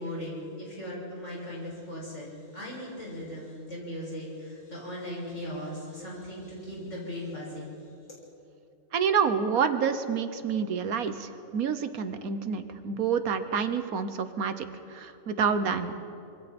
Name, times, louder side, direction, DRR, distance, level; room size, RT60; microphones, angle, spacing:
voice 1, 0.0-8.2, left 1 dB, 60° left, -5 dB, 7.1 m, -38 dB
voice 2, 8.9-15.9, right 6 dB, 90° right, 10 dB, 1.5 m, -28 dB
25.5 x 23.5 x 4.4 m, 2.7 s
omnidirectional pair, 1.5 m